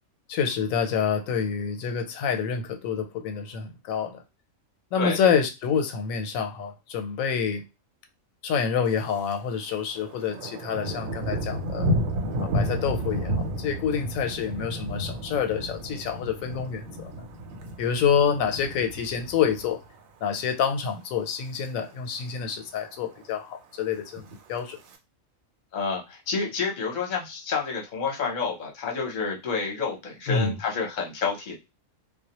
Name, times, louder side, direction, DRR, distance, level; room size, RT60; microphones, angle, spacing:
voice 1, 0.3-4.2 4.9-7.6 8.4-11.9 12.4-17.1 17.8-19.8 20.2-24.8 30.3-30.5, left 7 dB, 90° left, 1.0 m, -27 dB
voice 2, 5.0-5.3 25.7-31.6, left 5 dB, 45° left, 0.8 m, -29 dB
Thunder, 8.9-9.4 9.7-20.0 20.4-20.8 21.2-21.7 21.9-22.0 22.2-22.3 22.7-23.2 24.0-25.0, equal, 85° right, 1.0 m, -32 dB
2.2 x 2.1 x 2.8 m
omnidirectional pair, 1.4 m